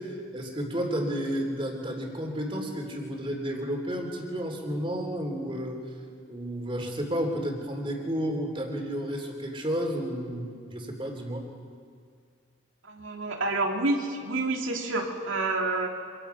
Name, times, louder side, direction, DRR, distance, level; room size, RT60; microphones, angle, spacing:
voice 1, 0.0-5.8 6.3-11.5, equal, 25° right, 2 dB, 3.3 m, -31 dB
voice 2, 12.8-15.9, right 2 dB, 85° right, 1 dB, 2.9 m, -28 dB
26.5 x 26.0 x 5.8 m, 2.1 s
head